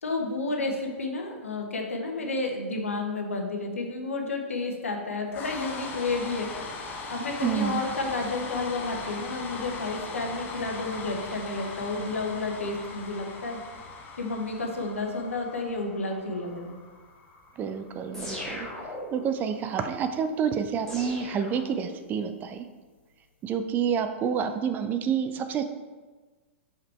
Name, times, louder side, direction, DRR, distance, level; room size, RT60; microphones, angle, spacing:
voice 1, 0.0-6.5 7.1-13.6 13.9-16.8, left 3 dB, 75° left, 2 dB, 1.1 m, -31 dB
sound 1, 5.3-19.4, left 3 dB, 25° left, 0.9 m, -40 dB
voice 2, 7.4-7.8 17.6-18.6 19.1-22.7 23.4-25.7, right 7 dB, 25° right, 8 dB, 0.4 m, -28 dB
sound 2, 18.1-19.4 20.9-22.2, left 1 dB, 5° left, 1.9 m, -38 dB
5.2 x 5.0 x 4.3 m, 1.3 s
figure-of-eight pair, 105°, 7 cm